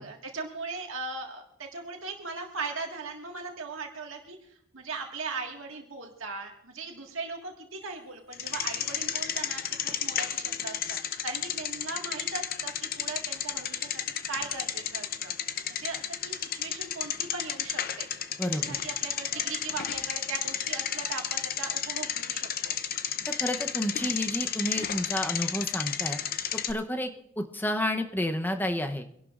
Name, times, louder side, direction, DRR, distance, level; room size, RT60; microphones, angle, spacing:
voice 1, 0.0-4.4 4.7-11.0 11.2-13.9 14.3-15.3 15.7-18.1 18.6-22.8, right 4 dB, 75° right, 1 dB, 1.7 m, -39 dB
Bicycle, 8.3-26.7, left 9 dB, 45° left, 0.6 m, -32 dB
voice 2, 18.4-18.8 23.2-26.2 26.7-27.1 27.4-29.1, left 1 dB, 10° left, 5 dB, 0.7 m, -30 dB
25.5 x 11.5 x 2.5 m, 0.72 s
head